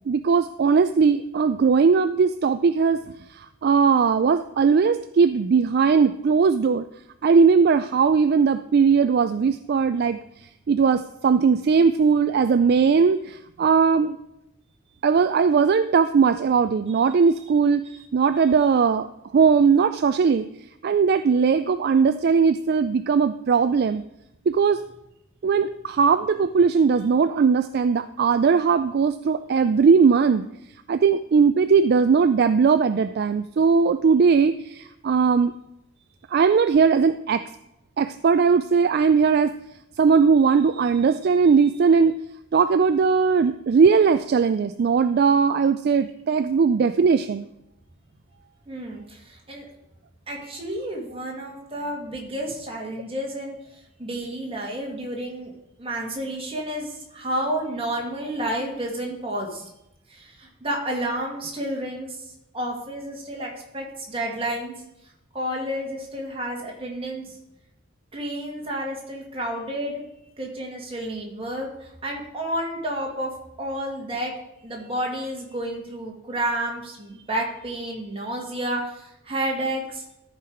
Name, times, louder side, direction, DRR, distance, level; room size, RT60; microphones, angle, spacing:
voice 1, 0.1-3.0 3.4-6.9 7.2-10.2 10.7-14.2 15.0-17.8 18.1-19.1 19.3-20.4 20.8-24.0 24.5-24.8 25.4-30.5 30.9-35.5 36.3-37.4 38.0-39.5 40.0-42.2 42.5-47.4, right 5 dB, 50° right, 10 dB, 0.3 m, -19 dB
voice 2, 48.7-49.7 50.3-53.6 54.0-55.5 55.8-59.7 60.1-62.2 62.5-64.7 65.3-67.4 68.1-70.0 70.4-73.3 73.6-74.3 74.6-80.0, right 1 dB, 25° right, -1 dB, 2.0 m, -30 dB
13.5 x 4.8 x 5.0 m, 0.85 s
head